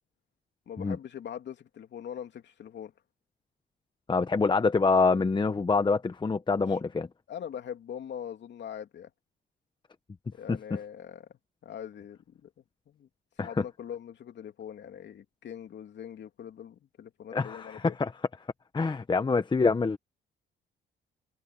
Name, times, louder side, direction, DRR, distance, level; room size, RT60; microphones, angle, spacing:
voice 1, 0.7-2.9 6.5-6.7 7.3-9.1 10.3-11.3 11.6-12.5 12.9-13.1 13.4-17.9, left 9 dB, 65° left, 2.9 m, -42 dB
voice 2, 4.1-7.1 10.5-10.8 13.4-13.6 17.3-18.1 18.7-20.0, left 4 dB, 25° left, 1.0 m, -26 dB
cardioid pair, 90°, 20 cm